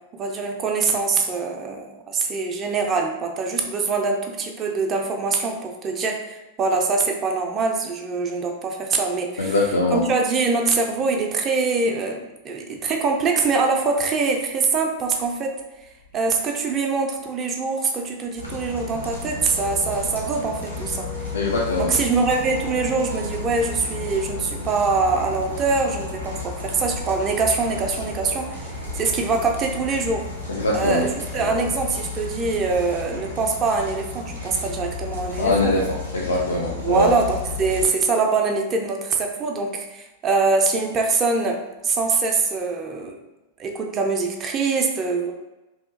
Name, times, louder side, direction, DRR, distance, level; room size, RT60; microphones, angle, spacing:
voice 1, 0.1-15.6 16.1-21.3 21.8-30.3 30.7-35.9 36.7-43.2 43.6-45.3, right 4 dB, 30° right, 2 dB, 0.4 m, -24 dB
voice 2, 9.4-10.0 21.3-21.9 30.5-31.1 31.3-31.5 35.4-37.1, left 2 dB, 70° left, -2 dB, 0.3 m, -22 dB
sound 1, 18.4-37.9, left 3 dB, 90° left, 0.7 m, -33 dB
2.7 x 2.4 x 2.4 m, 1.0 s
figure-of-eight pair, 90°, 0 cm